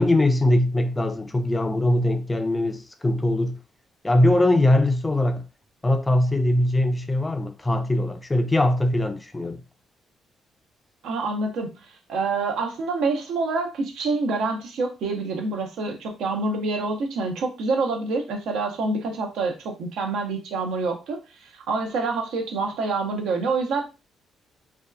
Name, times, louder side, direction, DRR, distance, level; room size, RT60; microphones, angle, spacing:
voice 1, 0.0-3.6 4.0-5.4 5.8-9.6, left 1 dB, 15° left, 0.4 m, -21 dB
voice 2, 11.0-11.7 12.1-23.8, right 3 dB, 80° right, 0.6 m, -27 dB
2.6 x 2.2 x 2.3 m
cardioid pair, 90°, 0 cm